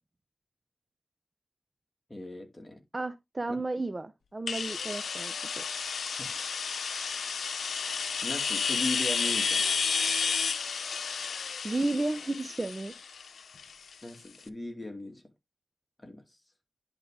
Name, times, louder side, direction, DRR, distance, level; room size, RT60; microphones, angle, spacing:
voice 1, 2.1-2.8 3.5-3.6 6.2-6.5 8.2-9.7 14.0-15.2 16.0-16.2, left 1 dB, 20° left, 2.5 m, -38 dB
voice 2, 2.9-5.6 11.6-12.9, right 2 dB, 25° right, 0.6 m, -33 dB
sound 1, 4.5-14.1, left 6 dB, 85° left, 0.7 m, -31 dB
10.5 x 3.7 x 4.9 m
wide cardioid pair, 90°, 0 cm